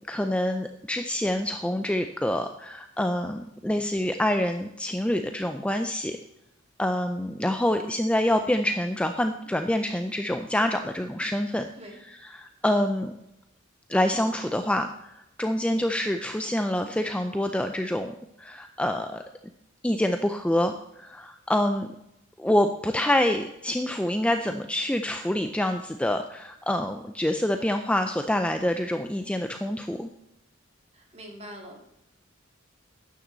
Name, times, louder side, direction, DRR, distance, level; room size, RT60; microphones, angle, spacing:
voice 1, 0.1-6.2 6.8-13.1 13.9-19.2 19.8-21.9 22.4-30.1, left 1 dB, 5° left, 6 dB, 0.4 m, -26 dB
voice 2, 30.9-31.9, equal, 30° right, 1 dB, 2.2 m, -43 dB
12.0 x 9.3 x 4.0 m, 0.87 s
head